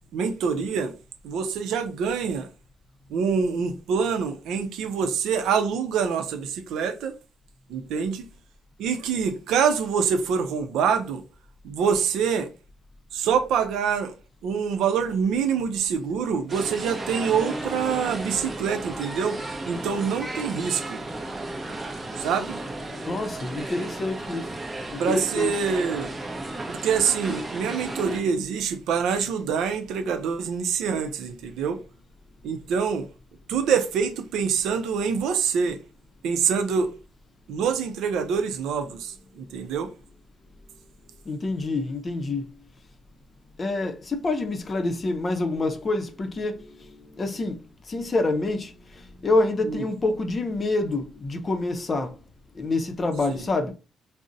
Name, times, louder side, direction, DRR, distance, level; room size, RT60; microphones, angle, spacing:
voice 1, 0.1-0.9 1.2-2.5 3.1-7.2 7.7-8.3 8.8-11.2 11.6-12.5 13.1-14.1 14.4-21.0 22.2-22.6 25.0-26.1 26.7-31.8 32.4-33.1 33.5-35.8 36.2-36.9 37.5-39.9 49.6-49.8 53.3-53.4, right 6 dB, 85° right, 0.4 m, -25 dB
sound 1, 16.5-28.2, right 2 dB, 25° right, 0.6 m, -34 dB
voice 2, 23.0-24.5 24.9-25.5 41.3-42.5 43.6-52.1 52.6-53.7, left 2 dB, 35° left, 0.5 m, -27 dB
2.5 x 2.0 x 3.8 m
cardioid pair, 90°, 0 cm